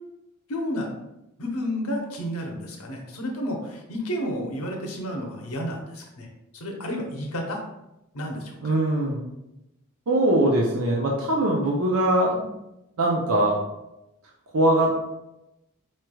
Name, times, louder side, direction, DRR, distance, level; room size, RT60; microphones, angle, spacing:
voice 1, 0.5-0.9 1.4-6.3 6.5-7.6 8.1-8.7, equal, 85° left, 1 dB, 0.8 m, -31 dB
voice 2, 8.6-9.3 10.1-12.4 13.0-13.6 14.5-15.0, right 1 dB, 75° right, -2 dB, 0.6 m, -21 dB
4.4 x 3.1 x 2.3 m, 0.91 s
head